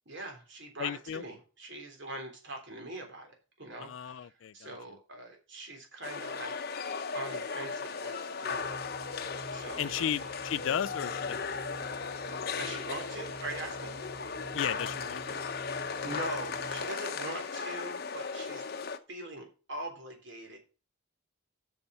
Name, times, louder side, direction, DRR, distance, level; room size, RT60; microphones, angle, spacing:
voice 1, 0.1-6.6 7.1-8.8 9.5-10.1 12.6-13.9 16.0-18.6 19.1-20.6, right 1 dB, 55° right, 3.5 m, -42 dB
voice 2, 0.8-1.2 3.8-4.8 9.8-11.5 14.5-15.4, left 9 dB, 65° left, 0.4 m, -34 dB
sound 1, 6.0-19.0, left 5 dB, 45° left, 0.8 m, -37 dB
sound 2, 8.5-16.9, right 1 dB, 35° right, 0.6 m, -48 dB
7.0 x 6.7 x 6.4 m
head